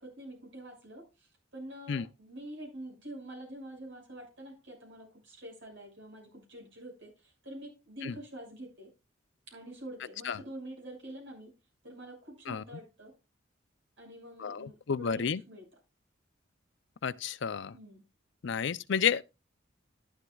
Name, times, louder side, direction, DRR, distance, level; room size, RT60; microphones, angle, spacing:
voice 1, 0.0-8.9 9.5-11.5 11.8-13.1 14.0-15.7 17.7-18.0, right 1 dB, 70° right, 6.3 m, -46 dB
voice 2, 14.4-15.4 17.0-17.7 18.4-19.2, left 7 dB, 70° left, 0.5 m, -31 dB
11.5 x 11.5 x 2.4 m
head